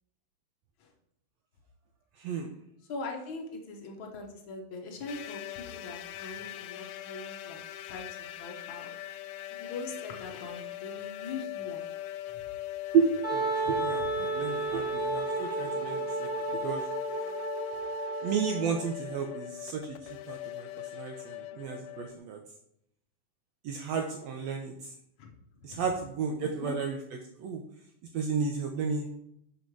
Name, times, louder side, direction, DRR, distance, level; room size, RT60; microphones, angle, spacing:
voice 1, 2.2-2.5 12.9-16.8 18.2-22.4 23.6-24.9 25.6-27.6 28.1-29.1, right 6 dB, 85° right, 4 dB, 1.5 m, -32 dB
voice 2, 2.9-8.9 9.5-11.8 14.2-14.3 25.2-25.3 25.6-25.8 26.4-26.8, left 3 dB, 70° left, 1 dB, 1.2 m, -42 dB
sound 1, 5.1-22.2, left 15 dB, 85° left, 2.1 m, -40 dB
Wind instrument woodwind instrument, 13.2-18.9, right 3 dB, 30° right, 1.3 m, -33 dB
6.4 x 5.6 x 4.6 m, 0.76 s
omnidirectional pair, 3.7 m